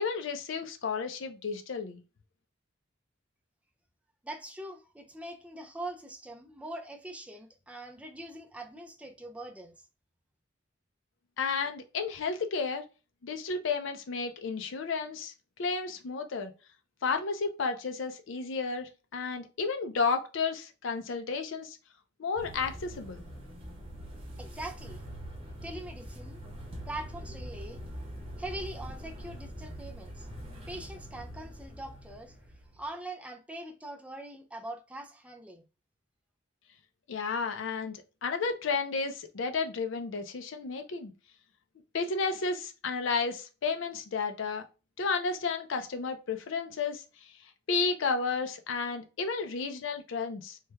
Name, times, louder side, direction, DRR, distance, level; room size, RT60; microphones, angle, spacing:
voice 1, 0.0-2.0 11.4-12.8 13.2-15.3 15.6-16.5 17.0-21.8 22.2-23.2 37.1-41.1 41.9-44.6 45.0-47.3 47.7-50.6, left 4 dB, 65° left, 0.5 m, -32 dB
voice 2, 4.2-9.7 24.4-25.0 25.6-26.4 26.9-27.8 28.1-30.3 30.7-32.4 32.7-35.7, right 1 dB, 5° right, 0.4 m, -42 dB
sound 1, 22.4-32.9, equal, 30° right, 0.8 m, -43 dB
3.2 x 2.2 x 3.2 m
head